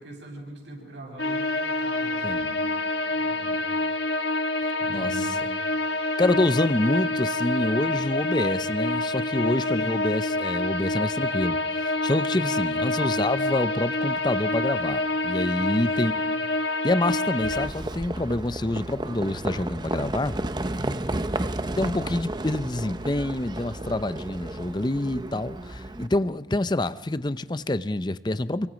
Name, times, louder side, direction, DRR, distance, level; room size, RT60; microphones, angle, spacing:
voice 1, 0.0-2.7 3.1-3.7 4.8-5.4 6.3-6.4 9.3-9.9 12.3-12.9 15.5-16.2 20.8-21.2, equal, 80° right, 0 dB, 7.7 m, -42 dB
sound 1, 1.2-17.7, left 2 dB, 70° left, 1.7 m, -27 dB
voice 2, 4.9-5.3 6.2-16.1 16.8-20.4 21.8-28.7, left 2 dB, 25° left, 13 dB, 0.7 m, -27 dB
Livestock farm animals working animals, 17.4-26.1, right 1 dB, 25° right, 0.7 m, -32 dB
28.0 x 24.0 x 5.2 m, 1.2 s
head